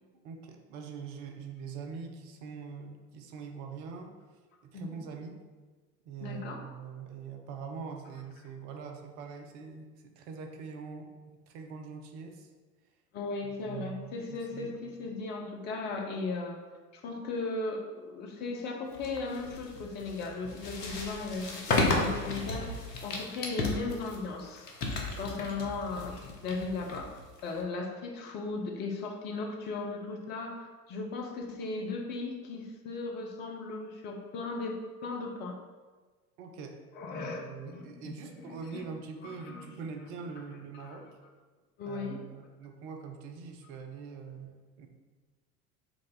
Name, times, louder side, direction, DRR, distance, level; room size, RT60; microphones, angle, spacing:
voice 1, 0.2-4.1 4.6-5.4 6.1-11.2 11.5-12.5 13.4-14.8 25.6-25.7 36.4-36.8 37.1-41.1 41.9-44.9, right 5 dB, 50° right, 4 dB, 0.7 m, -43 dB
voice 2, 6.2-6.6 13.1-16.6 16.9-24.7 25.2-27.1 27.4-35.6 37.0-38.8 39.2-39.7 40.7-41.0 41.8-42.2, left 3 dB, 25° left, 2 dB, 0.4 m, -37 dB
sound 1, 18.9-27.6, left 2 dB, 75° left, 0.8 m, -34 dB
4.6 x 2.4 x 3.8 m, 1.4 s
figure-of-eight pair, 70°, 48 cm